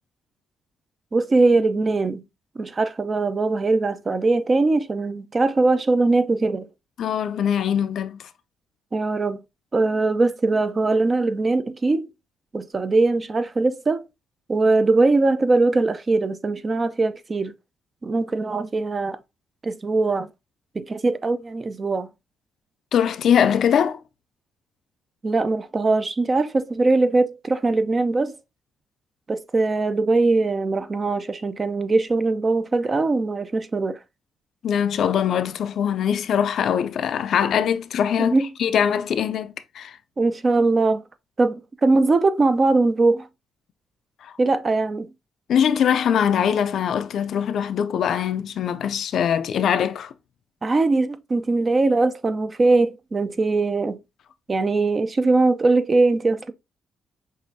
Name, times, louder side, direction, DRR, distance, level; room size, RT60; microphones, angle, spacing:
voice 1, 1.1-2.2 2.6-6.7 8.9-9.4 9.7-12.1 12.5-14.0 14.5-17.5 18.0-19.2 19.6-20.3 20.7-22.1 25.2-28.4 29.3-34.0 38.2-38.5 40.2-41.0 41.4-43.3 44.4-45.1 50.6-54.0 54.5-56.5, right 3 dB, 30° right, 0.5 m, -21 dB
voice 2, 7.0-8.2 22.9-24.0 34.6-40.0 44.2-44.3 45.5-50.1, left 8 dB, 65° left, 0.4 m, -22 dB
6.0 x 2.5 x 2.6 m
cardioid pair, 90°, 0 cm